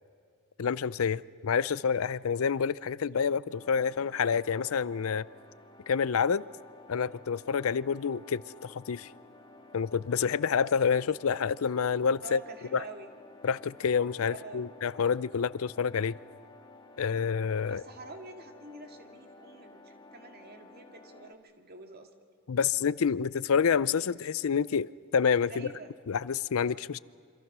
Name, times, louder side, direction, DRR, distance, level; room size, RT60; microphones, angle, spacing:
voice 1, 0.6-5.2 5.9-6.4 6.9-9.1 9.7-12.4 12.7-12.8 13.4-16.2 17.0-17.8 22.5-25.7 26.1-27.0, left 6 dB, 80° left, 0.5 m, -28 dB
sound 1, 3.5-21.3, left 2 dB, 20° left, 1.7 m, -53 dB
voice 2, 12.2-13.1 14.3-14.7 17.6-22.1 25.5-25.9, right 3 dB, 50° right, 2.1 m, -47 dB
27.5 x 25.5 x 6.1 m
head